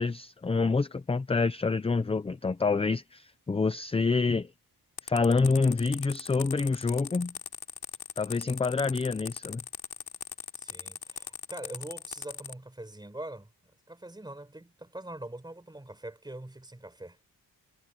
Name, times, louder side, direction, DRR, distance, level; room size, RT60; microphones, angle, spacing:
voice 1, 0.0-4.5 5.0-7.3 8.2-9.6, left 4 dB, 15° left, 0.4 m, -27 dB
sound 1, 5.0-12.5, left 8 dB, 70° left, 2.8 m, -40 dB
voice 2, 10.6-13.5 13.9-17.2, right 1 dB, 10° right, 4.3 m, -43 dB
wide cardioid pair, 180°, 40 cm